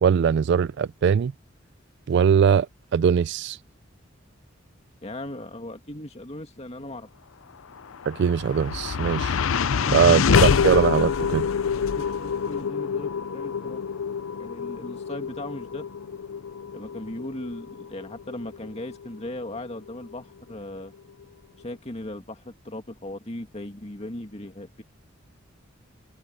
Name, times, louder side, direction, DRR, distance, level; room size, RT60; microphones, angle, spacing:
voice 1, 0.0-1.3 2.1-2.7 2.9-3.6 8.1-9.4 9.9-11.5, right 7 dB, 60° right, 0.3 m, -21 dB
voice 2, 5.0-7.1 9.6-10.2 11.9-13.8 14.4-15.9 16.7-20.9 21.6-24.8, left 1 dB, 30° left, 2.3 m, -38 dB
sound 1, 7.8-20.1, left 6 dB, 80° left, 0.6 m, -26 dB
head